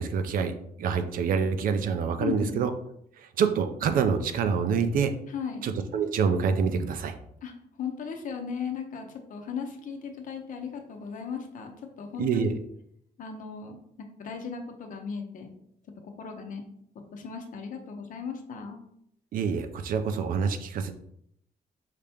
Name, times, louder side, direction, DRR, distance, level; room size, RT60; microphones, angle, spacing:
voice 1, 0.0-2.7 3.2-5.1 5.6-7.2 12.2-12.5 19.3-20.9, right 6 dB, 65° right, 8 dB, 0.5 m, -26 dB
voice 2, 2.2-2.7 5.3-5.7 7.4-7.5 7.8-11.7 12.0-12.5 13.2-15.5 16.0-16.6 17.1-18.8, left 6 dB, 60° left, 4 dB, 0.8 m, -36 dB
5.0 x 2.8 x 3.5 m, 0.71 s
cardioid pair, 150°, 16 cm